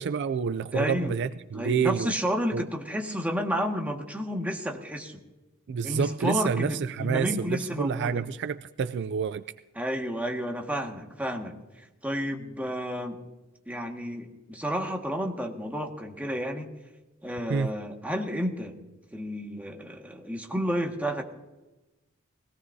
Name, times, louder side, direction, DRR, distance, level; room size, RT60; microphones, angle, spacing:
voice 1, 0.0-2.1 2.5-2.7 5.7-9.4 17.5-17.7, right 6 dB, 55° right, 0.4 m, -28 dB
voice 2, 0.7-1.1 1.5-5.2 5.8-8.2 9.8-11.6 12.0-13.2 13.7-16.7 17.2-18.8 19.1-21.2, equal, 5° right, 1.7 m, -31 dB
21.0 x 18.0 x 2.7 m
head